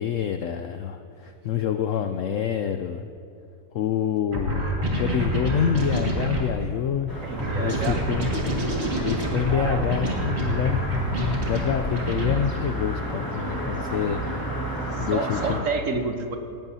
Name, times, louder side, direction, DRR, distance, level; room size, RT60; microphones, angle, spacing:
voice 1, 0.0-3.0 3.7-7.2 7.5-8.3 9.0-10.8 11.2-14.2 14.9-15.6, left 9 dB, 75° left, 7 dB, 0.7 m, -27 dB
sound 1, 4.3-6.5 7.4-12.3, right 1 dB, 40° right, 2.1 m, -27 dB
sound 2, 7.1-15.6, right 1 dB, 10° left, 1.7 m, -32 dB
voice 2, 7.2-8.0 9.5-10.0 14.9-16.4, right 4 dB, 55° right, 5 dB, 1.2 m, -29 dB
18.0 x 17.5 x 2.7 m, 2.5 s
omnidirectional pair, 1.8 m